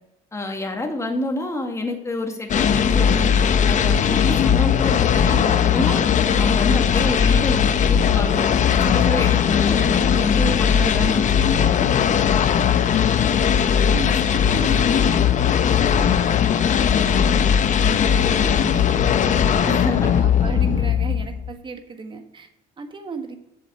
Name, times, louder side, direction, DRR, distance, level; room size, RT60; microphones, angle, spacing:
voice 1, 0.3-3.3 3.7-6.0 6.4-8.5 8.8-11.9 19.7-20.2, left 2 dB, 15° left, 3 dB, 2.0 m, -28 dB
sound 1, 2.5-21.5, left 8 dB, 45° left, 0.8 m, -18 dB
voice 2, 13.9-16.4 16.8-22.5 22.8-23.4, right 5 dB, 30° right, 6 dB, 1.5 m, -36 dB
7.4 x 7.3 x 8.4 m, 0.82 s
cardioid pair, 110°, 17 cm